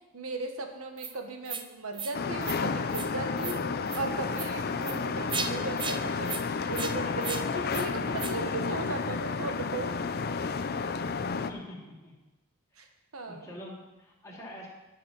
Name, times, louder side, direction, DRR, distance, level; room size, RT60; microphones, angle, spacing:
voice 1, 0.1-3.7 3.9-9.9 12.8-12.9 13.1-13.5, right 3 dB, 75° right, 4 dB, 1.4 m, -37 dB
sound 1, 1.0-1.1 1.5-1.6 1.9-2.1 2.4-2.6 2.9-3.1 3.4-3.6 3.9-4.0 4.3-4.5 4.8-5.0 5.3-5.5 5.8-6.0 6.3-6.4 6.7-6.9 7.2-7.4 7.7-7.9 8.2-8.3, right 6 dB, 20° right, 0.6 m, -35 dB
sound 2, 2.1-11.5, left 5 dB, 45° left, 0.5 m, -31 dB
voice 2, 11.3-12.1 12.8-12.9 13.3-14.7, left 1 dB, 15° left, -4 dB, 2.7 m, -45 dB
11.0 x 7.3 x 6.0 m, 1.0 s
head